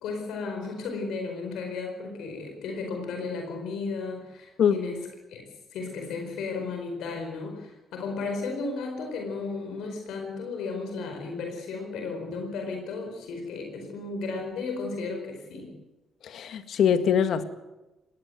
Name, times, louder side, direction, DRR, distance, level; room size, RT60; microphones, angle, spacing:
voice 1, 0.0-5.0 5.3-5.4 5.7-15.7, left 4 dB, 85° left, 4.7 m, -34 dB
voice 2, 16.2-17.4, left 8 dB, 70° left, 1.8 m, -23 dB
20.5 x 18.0 x 8.1 m
cardioid pair, 90°, 0 cm